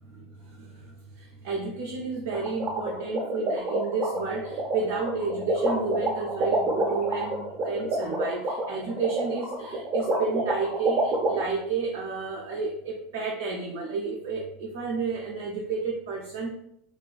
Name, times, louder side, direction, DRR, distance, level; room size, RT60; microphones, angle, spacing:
voice 1, 0.2-16.5, right 4 dB, 55° right, -2 dB, 0.4 m, -31 dB
sound 1, 2.3-11.4, right 2 dB, 30° right, 0.8 m, -27 dB
2.4 x 2.2 x 2.4 m, 0.73 s
figure-of-eight pair, 75°, 0 cm